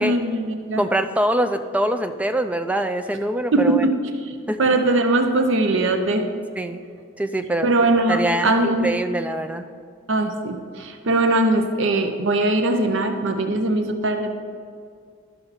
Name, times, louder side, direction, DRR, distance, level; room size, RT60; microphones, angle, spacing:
voice 1, 0.0-0.8 3.5-3.9 4.2-6.3 7.6-8.9 10.1-14.4, right 2 dB, 60° right, 6 dB, 0.7 m, -21 dB
voice 2, 0.8-3.8 4.5-4.6 6.6-6.8 7.2-7.7 8.1-9.6, right 1 dB, 5° right, 8 dB, 0.3 m, -23 dB
12.0 x 5.7 x 4.1 m, 2.3 s
head